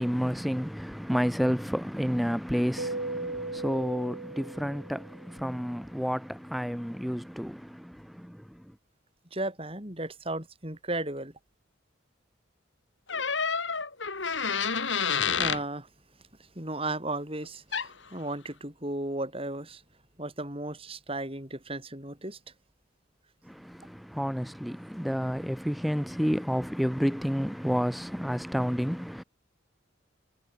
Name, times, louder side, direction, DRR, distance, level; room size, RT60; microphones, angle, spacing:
voice 1, 0.0-8.6 23.4-29.2, equal, ahead, 2.2 m, -30 dB
Keyboard (musical), 2.8-5.3, right 2 dB, 80° right, 4.0 m, -37 dB
voice 2, 9.3-11.3 15.4-15.9 16.5-19.8 20.2-22.4, right 2 dB, 30° right, 6.7 m, -35 dB
sound 1, 13.1-15.6 17.7-17.9, left 6 dB, 75° left, 3.1 m, -29 dB
head